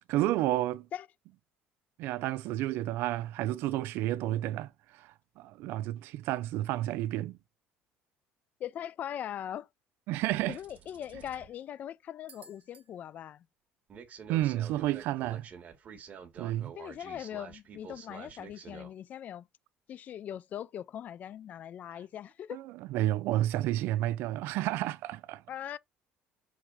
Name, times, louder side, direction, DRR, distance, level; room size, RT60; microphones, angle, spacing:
voice 1, 0.1-0.9 2.0-7.4 10.1-10.6 14.3-15.5 16.4-16.7 22.5-22.6 22.9-25.4, right 14 dB, 70° right, 0.5 m, -31 dB
voice 2, 8.6-9.7 10.5-13.5 16.8-19.5 19.9-22.6 25.5-25.8, left 10 dB, 45° left, 0.4 m, -40 dB
sound 1, 10.2-11.5 12.3-12.8 13.9-18.9, right 7 dB, 40° right, 1.4 m, -49 dB
6.1 x 3.6 x 4.9 m
cardioid pair, 135°, 4 cm